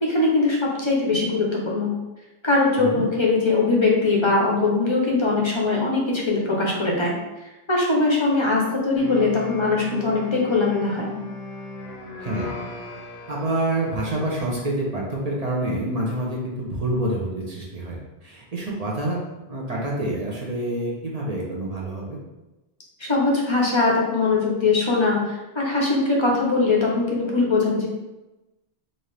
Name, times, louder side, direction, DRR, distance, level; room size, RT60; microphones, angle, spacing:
voice 1, 0.0-1.9 2.4-7.1 7.7-11.1 23.0-27.9, left 3 dB, 30° left, -2 dB, 0.6 m, -21 dB
sound 1, 9.0-14.9, left 2 dB, 70° left, 0.8 m, -37 dB
voice 2, 13.3-19.2 19.5-22.2, right 1 dB, 40° right, -4 dB, 0.7 m, -27 dB
4.1 x 2.5 x 3.2 m, 1.0 s
omnidirectional pair, 1.1 m